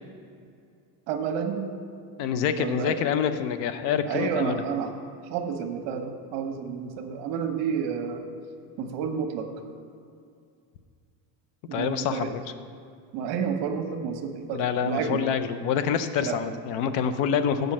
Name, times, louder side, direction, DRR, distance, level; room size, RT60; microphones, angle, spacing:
voice 1, 1.1-1.7 2.6-2.9 4.1-4.9 5.3-8.3 8.8-9.5 11.7-12.3 13.1-15.3 16.2-16.4, right 7 dB, 60° right, 5 dB, 1.2 m, -30 dB
voice 2, 2.2-4.6 11.7-12.3 14.5-17.7, left 8 dB, 60° left, 11 dB, 0.7 m, -26 dB
7.3 x 5.3 x 7.4 m, 2.3 s
cardioid pair, 160°, 48 cm